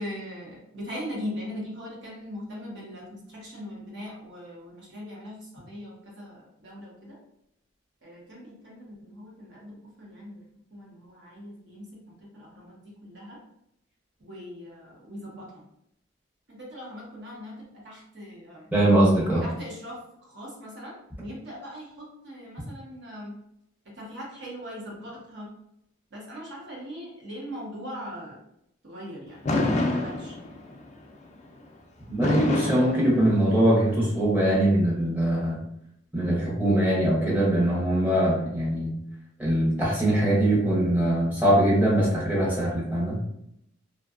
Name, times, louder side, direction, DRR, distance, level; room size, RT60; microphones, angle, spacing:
voice 1, 0.0-6.4 6.6-7.2 8.0-9.7 10.0-10.3 10.7-11.9 12.3-13.4 14.2-15.4 16.5-17.5 17.8-18.7 19.4-20.0 20.3-20.9 21.2-23.3 24.0-25.5 26.1-28.4 28.8-30.3, equal, 60° right, -4 dB, 0.8 m, -40 dB
voice 2, 18.7-19.4 32.1-35.6 36.1-38.9 39.4-43.2, right 1 dB, 10° right, -6 dB, 0.7 m, -22 dB
Fireworks, 29.5-30.8 32.2-33.8, left 2 dB, 35° left, 0.3 m, -27 dB
2.6 x 2.2 x 2.4 m, 0.77 s
head